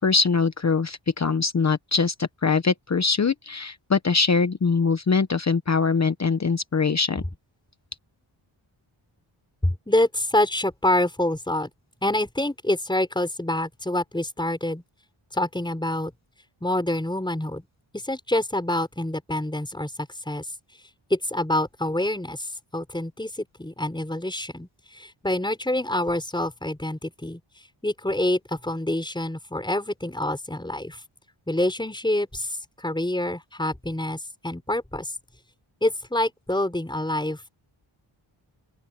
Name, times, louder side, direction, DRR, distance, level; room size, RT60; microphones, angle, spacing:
voice 1, 0.0-7.2, left 4 dB, 35° left, 0.9 m, -22 dB
voice 2, 9.6-11.7 12.0-14.8 15.3-16.1 16.6-17.6 17.9-20.5 21.1-27.4 27.8-31.0 31.5-35.1 35.8-37.5, left 1 dB, 10° left, 5.4 m, -26 dB
open air
wide cardioid pair, 95°, 48 cm